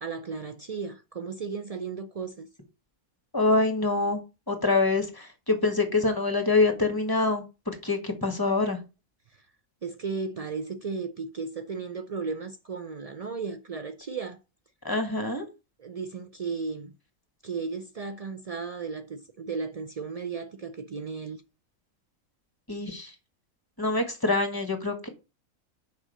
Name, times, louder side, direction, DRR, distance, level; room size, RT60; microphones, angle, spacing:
voice 1, 0.0-2.5 9.8-14.4 15.8-16.9 17.4-21.4, right 5 dB, 75° right, 0.3 m, -35 dB
voice 2, 3.3-8.8 14.8-15.5 22.7-23.1 23.8-25.1, left 3 dB, 15° left, 1.6 m, -25 dB
6.3 x 5.3 x 6.4 m
omnidirectional pair, 1.5 m